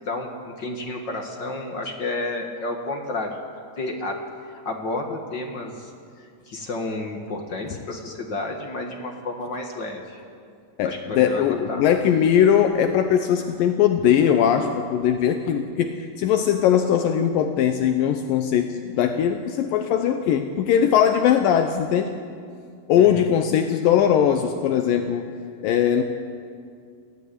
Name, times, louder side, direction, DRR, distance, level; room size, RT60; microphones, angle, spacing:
voice 1, 0.0-3.4 3.8-4.2 4.7-5.9 6.5-10.2 10.8-11.8 23.0-23.3, left 2 dB, 40° left, 2 dB, 1.7 m, -31 dB
voice 2, 10.8-22.1 22.9-25.3 25.6-26.0, left 9 dB, 75° left, 7 dB, 2.4 m, -20 dB
22.0 x 15.0 x 9.9 m, 2.3 s
omnidirectional pair, 4.2 m